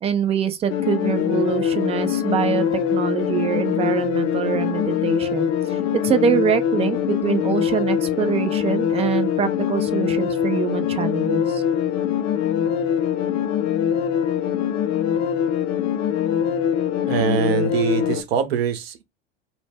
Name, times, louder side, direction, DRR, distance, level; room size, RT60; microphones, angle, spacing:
voice 1, 0.0-11.6, right 8 dB, 20° right, 0.3 m, -24 dB
sound 1, 0.7-18.2, left 9 dB, 40° left, 0.5 m, -23 dB
voice 2, 17.1-19.0, right 7 dB, 70° right, 0.6 m, -23 dB
2.1 x 2.0 x 3.3 m
figure-of-eight pair, 80°, 33 cm